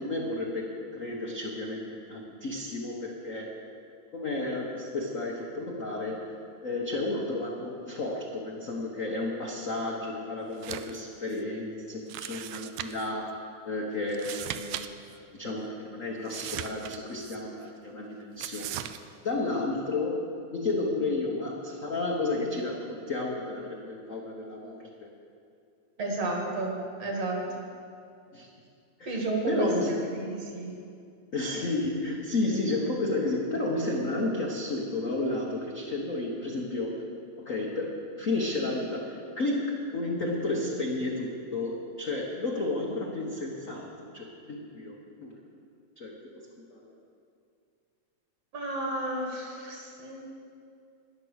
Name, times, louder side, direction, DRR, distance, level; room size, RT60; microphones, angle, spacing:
voice 1, 0.0-3.5 4.1-6.2 6.6-13.4 13.6-18.8 19.2-20.2 20.5-24.9 28.3-28.5 29.0-29.2 29.5-30.0 31.3-37.0 37.4-45.4 46.0-46.9, left 2 dB, 80° left, -2 dB, 0.7 m, -32 dB
sound 1, 10.5-11.0 11.3-11.4 12.1-13.1 14.1-14.9 15.1-15.2 16.3-17.4 18.4-19.0, right 11 dB, 80° right, 1.5 m, -38 dB
voice 2, 26.0-27.4 29.1-29.7 30.1-30.7 48.5-50.2, right 2 dB, 55° right, 0 dB, 2.9 m, -31 dB
12.0 x 10.5 x 6.4 m, 2.5 s
omnidirectional pair, 3.4 m